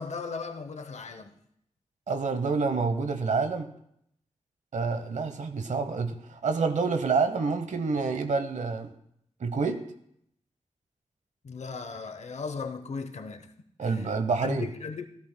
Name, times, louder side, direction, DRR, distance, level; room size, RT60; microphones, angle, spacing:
voice 1, 0.0-1.3 11.4-13.5 13.8-14.1 14.4-15.1, left 4 dB, 65° left, 0.9 m, -37 dB
voice 2, 2.1-3.7 4.7-8.9 9.4-9.8 13.8-14.7, right 4 dB, 80° right, 1.0 m, -28 dB
15.5 x 13.0 x 2.2 m
wide cardioid pair, 90°, 12 cm